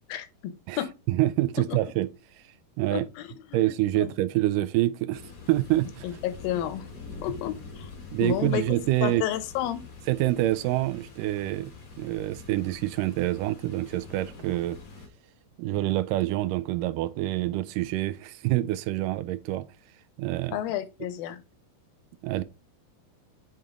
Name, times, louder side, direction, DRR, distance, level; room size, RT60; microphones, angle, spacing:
voice 1, 0.1-0.9 1.7-1.8 2.9-3.6 3.9-4.1 6.0-6.8 7.2-7.9 8.2-8.6 9.0-9.8 20.5-21.4, left 12 dB, 85° left, 2.5 m, -31 dB
voice 2, 0.7-2.1 2.8-3.1 3.5-5.2 5.5-6.1 8.1-9.2 10.1-11.7 12.0-14.8 15.6-19.7 20.2-20.6 22.2-22.4, right 16 dB, 80° right, 2.0 m, -26 dB
sound 1, 5.1-15.1, left 4 dB, 50° left, 1.0 m, -45 dB
6.9 x 3.9 x 3.7 m
omnidirectional pair, 4.1 m